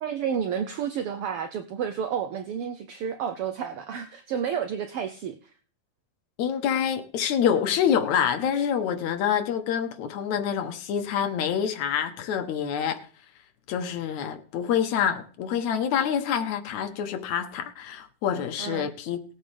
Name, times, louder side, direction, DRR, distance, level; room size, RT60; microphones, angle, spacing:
voice 1, 0.0-5.5 18.6-18.9, right 8 dB, 75° right, 1.3 m, -31 dB
voice 2, 6.4-13.1 13.7-19.2, left 8 dB, 75° left, 2.4 m, -26 dB
20.0 x 8.6 x 3.4 m
omnidirectional pair, 3.4 m